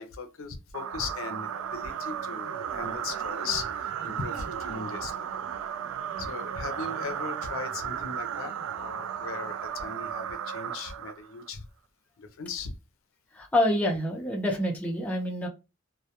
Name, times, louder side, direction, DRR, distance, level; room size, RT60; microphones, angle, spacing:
voice 1, 0.0-5.3 6.2-11.6 12.2-12.7, left 4 dB, 70° left, 0.5 m, -38 dB
sound 1, 0.7-11.5, right 8 dB, 80° right, 0.3 m, -35 dB
voice 2, 13.4-15.5, left 1 dB, 5° left, 0.5 m, -27 dB
2.2 x 2.1 x 2.8 m
head